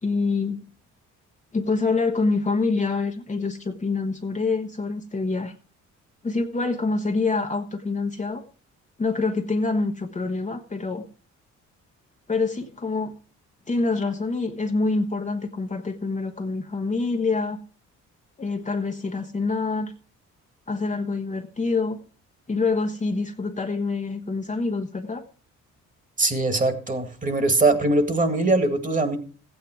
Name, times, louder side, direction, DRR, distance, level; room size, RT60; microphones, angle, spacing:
voice 1, 0.0-0.7 1.5-5.5 6.2-8.4 9.0-11.0 12.3-13.1 13.7-17.6 18.4-19.9 20.7-22.0 22.5-25.2, left 3 dB, 25° left, 4 dB, 1.1 m, -26 dB
voice 2, 26.2-29.2, right 2 dB, 25° right, 10 dB, 2.0 m, -21 dB
14.5 x 8.9 x 4.5 m, 0.39 s
cardioid pair, 90°, 30 cm